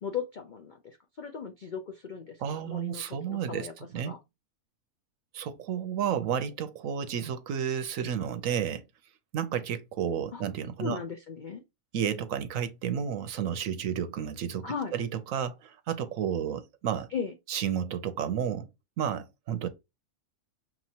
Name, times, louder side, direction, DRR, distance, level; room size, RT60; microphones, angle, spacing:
voice 1, 0.0-3.7 4.1-4.2 10.3-10.4 10.8-11.6 14.6-14.9 17.1-17.3, left 6 dB, 70° left, 0.4 m, -37 dB
voice 2, 2.4-4.1 5.3-8.8 9.3-11.0 11.9-17.1 17.5-18.7 19.0-19.7, right 8 dB, 70° right, 0.9 m, -31 dB
6.0 x 3.0 x 2.8 m
omnidirectional pair, 1.6 m